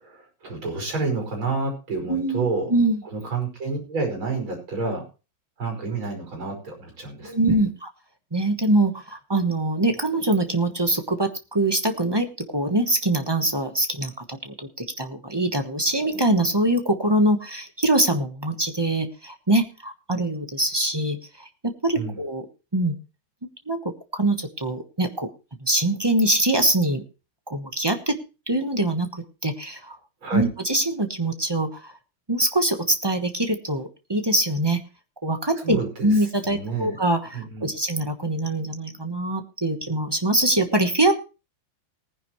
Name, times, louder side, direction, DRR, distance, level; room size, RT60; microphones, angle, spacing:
voice 1, 0.0-2.7 3.1-5.0 5.6-7.6 21.9-22.2 30.2-30.5 35.6-36.1 36.4-37.0 37.3-37.7, right 3 dB, 80° right, 2 dB, 6.0 m, -29 dB
voice 2, 2.1-3.0 7.2-7.9 8.3-12.3 12.5-22.5 22.7-22.9 23.7-25.3 25.6-27.0 27.5-28.2 28.5-30.0 30.3-31.9 32.3-34.8 35.2-41.1, right 1 dB, 20° right, 6 dB, 0.8 m, -23 dB
19.0 x 10.0 x 3.1 m, 0.31 s
omnidirectional pair, 2.2 m